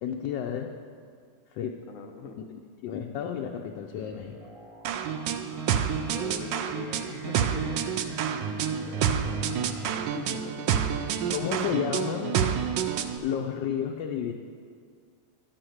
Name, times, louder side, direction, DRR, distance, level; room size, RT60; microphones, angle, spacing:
voice 1, 0.0-0.7 1.5-1.7 2.8-4.3 11.3-12.5 13.2-14.3, left 8 dB, 80° left, 3 dB, 1.3 m, -31 dB
voice 2, 1.9-2.4 6.1-8.1 8.7-9.7 10.0-10.7, left 5 dB, 55° left, 4 dB, 1.1 m, -42 dB
sound 1, 3.9-10.0, right 2 dB, 50° right, 1.4 m, -50 dB
sound 2, 4.8-13.2, right 8 dB, 85° right, 1.3 m, -28 dB
12.0 x 4.8 x 7.8 m, 2.1 s
omnidirectional pair, 1.9 m